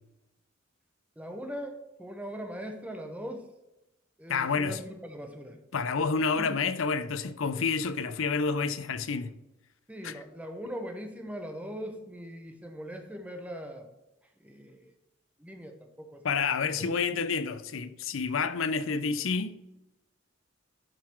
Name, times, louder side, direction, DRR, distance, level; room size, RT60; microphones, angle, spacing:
voice 1, 1.2-3.5 4.2-5.6 6.4-6.6 9.9-13.9 14.4-14.9 15.4-16.7, equal, 5° right, 1.0 m, -40 dB
voice 2, 4.3-4.8 5.7-9.4 10.0-10.2 16.2-19.6, left 5 dB, 80° left, 0.6 m, -29 dB
12.0 x 3.9 x 4.5 m
head